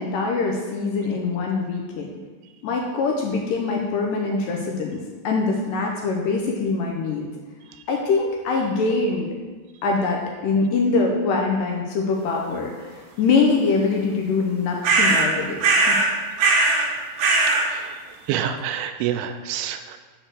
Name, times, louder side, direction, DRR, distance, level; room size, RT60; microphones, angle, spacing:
voice 1, 0.0-2.1 2.6-7.3 7.9-9.3 9.8-16.0, left 4 dB, 75° left, 0 dB, 2.1 m, -23 dB
sound 1, 14.8-15.3 15.6-16.1 16.4-16.9 17.2-17.7, right 3 dB, 70° right, 2.5 m, -18 dB
voice 2, 18.3-20.0, right 9 dB, 85° right, 8 dB, 2.5 m, -27 dB
6.5 x 4.5 x 6.2 m, 1.4 s
omnidirectional pair, 4.4 m